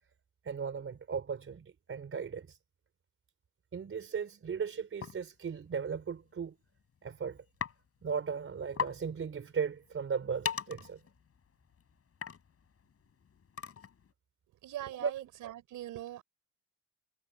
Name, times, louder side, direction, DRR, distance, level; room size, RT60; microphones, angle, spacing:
voice 1, 0.4-2.6 3.7-6.5 7.0-7.4 8.0-11.0 14.9-15.1, right 6 dB, 45° right, 4.3 m, -37 dB
sound 1, 5.0-5.2 6.3-6.4 6.8-7.1 7.6-7.8 8.1-8.2 8.5-8.6 8.7-9.0 9.4-14.1, left 7 dB, 50° left, 6.6 m, -40 dB
voice 2, 14.6-16.2, right 13 dB, 85° right, 5.1 m, -42 dB
cardioid pair, 90°, 30 cm